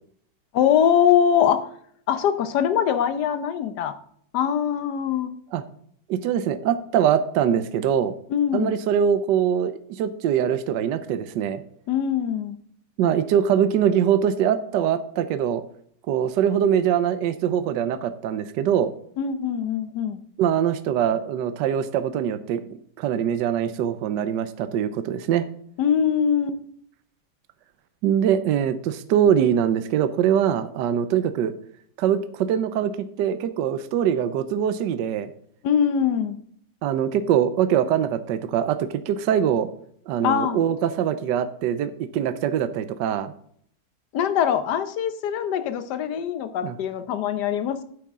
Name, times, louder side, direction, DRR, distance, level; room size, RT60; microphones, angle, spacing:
voice 1, 0.5-1.6 2.1-3.9 4.3-5.3 8.3-8.8 11.9-12.6 19.2-20.2 25.8-26.6 35.6-36.4 40.2-40.6 44.1-47.8, left 8 dB, 65° left, 10 dB, 1.3 m, -22 dB
voice 2, 6.1-8.1 8.5-11.6 13.0-15.6 16.1-18.9 20.4-22.6 23.0-25.5 28.0-31.5 32.0-35.3 36.8-39.7 40.1-43.3 46.6-46.7, right 9 dB, 70° right, 11 dB, 1.2 m, -23 dB
9.2 x 8.5 x 3.6 m, 0.64 s
omnidirectional pair, 2.2 m